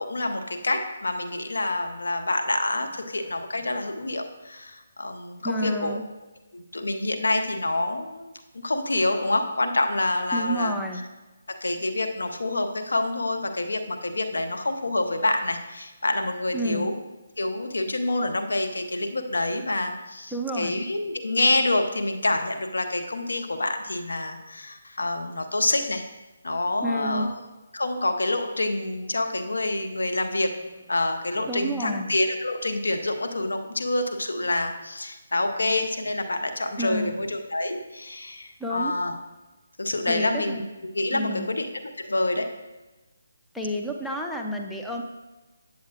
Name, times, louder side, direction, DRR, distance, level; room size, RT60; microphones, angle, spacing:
voice 1, 0.0-6.0 6.5-10.8 11.5-16.9 17.4-26.0 26.4-27.3 27.7-30.6 30.9-39.2 39.8-40.6 40.9-42.6, left 2 dB, 85° left, 6 dB, 0.8 m, -27 dB
voice 2, 5.4-6.0 10.3-11.0 16.5-16.9 20.3-20.7 26.8-27.3 31.5-32.1 36.8-37.1 38.6-38.9 40.1-40.7 41.1-41.5 43.5-45.0, equal, 5° left, 1 dB, 0.4 m, -29 dB
8.5 x 7.4 x 2.4 m, 1.1 s
hypercardioid pair, 160°, 0 cm